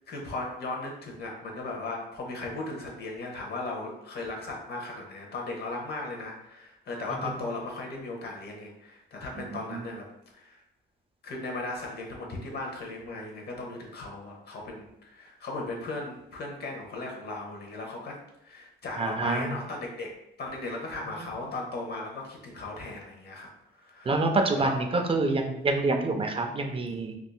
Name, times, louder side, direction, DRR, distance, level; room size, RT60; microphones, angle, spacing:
voice 1, 0.1-10.1 10.3-10.6 11.2-20.1 20.4-23.5 23.8-24.2 24.5-24.7, left 2 dB, 55° left, 0 dB, 0.8 m, -37 dB
voice 2, 19.0-19.5 24.1-27.2, right 3 dB, 25° right, 4 dB, 0.5 m, -27 dB
3.6 x 2.4 x 2.3 m, 0.83 s
cardioid pair, 90°, 20 cm